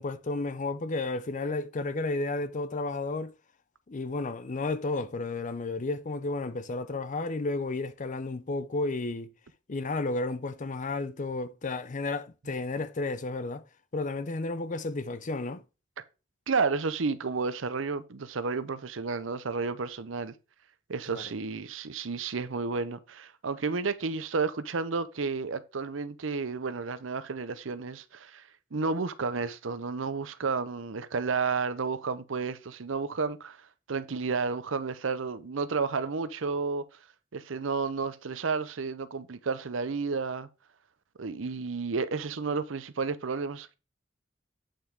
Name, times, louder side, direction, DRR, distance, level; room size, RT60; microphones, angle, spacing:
voice 1, 0.0-3.3 3.9-9.3 9.7-13.6 13.9-15.6 21.1-21.2, left 3 dB, 40° left, 0.6 m, -32 dB
voice 2, 16.5-20.3 20.9-28.4 28.7-33.6 33.9-36.8 37.3-40.5 41.2-43.7, right 4 dB, 75° right, 0.7 m, -31 dB
8.5 x 5.8 x 3.6 m
head